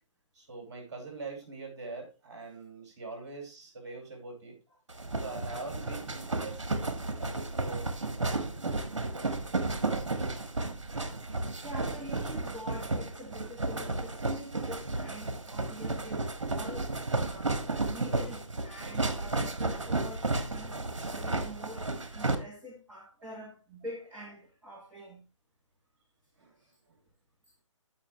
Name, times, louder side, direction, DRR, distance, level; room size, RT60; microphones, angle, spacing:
voice 1, 0.3-6.7 7.1-7.9 26.4-26.5, right 3 dB, 35° right, 4.9 m, -43 dB
sound 1, 4.9-22.3, right 2 dB, 65° right, 1.5 m, -33 dB
voice 2, 11.3-25.2 26.6-26.7, equal, 5° right, 1.6 m, -46 dB
15.0 x 5.2 x 3.2 m
figure-of-eight pair, 140°, 16 cm